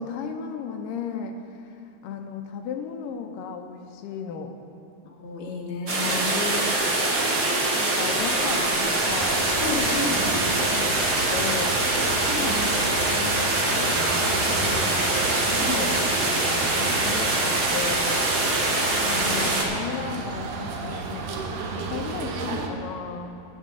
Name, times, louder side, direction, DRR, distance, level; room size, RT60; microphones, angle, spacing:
voice 1, 0.0-1.6 2.0-4.5 6.0-7.0 7.7-9.5 10.0-11.7 12.4-15.0 15.4-16.1 16.5-18.1 19.0-23.4, left 6 dB, 80° left, 5 dB, 2.3 m, -35 dB
voice 2, 5.2-6.6 7.3-7.4 9.6-10.3 12.3-12.6 15.6-15.8 18.8-19.7, left 3 dB, 40° left, -5 dB, 0.7 m, -32 dB
sound 1, 5.9-19.6, right 2 dB, 65° right, 0.8 m, -24 dB
sound 2, 9.0-22.7, right 4 dB, 80° right, 1.3 m, -33 dB
19.0 x 7.4 x 3.6 m, 2.9 s
omnidirectional pair, 3.9 m